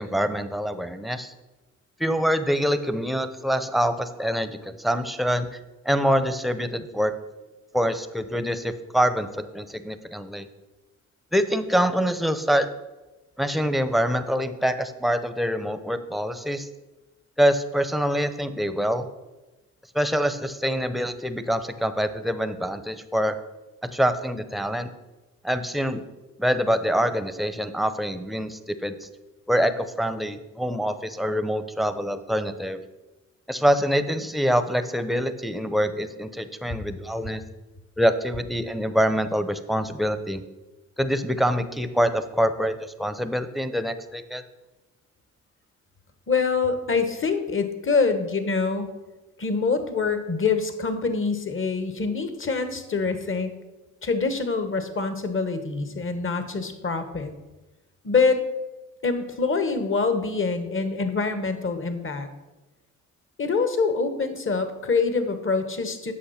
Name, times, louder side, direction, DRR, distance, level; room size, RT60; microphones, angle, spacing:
voice 1, 0.0-1.3 2.0-5.5 5.8-7.1 7.7-10.5 11.3-12.7 13.4-16.7 17.4-19.1 19.9-23.3 23.9-24.9 25.4-26.0 26.4-29.0 29.5-32.8 33.5-37.4 38.0-40.4 41.0-44.4, equal, ahead, 11 dB, 0.8 m, -25 dB
voice 2, 46.3-48.9 49.4-53.5 54.0-57.3 58.0-58.4 59.0-62.3 63.4-66.1, left 4 dB, 40° left, 9 dB, 1.4 m, -25 dB
8.5 x 6.2 x 5.8 m, 1.1 s
supercardioid pair, 60°, 32 cm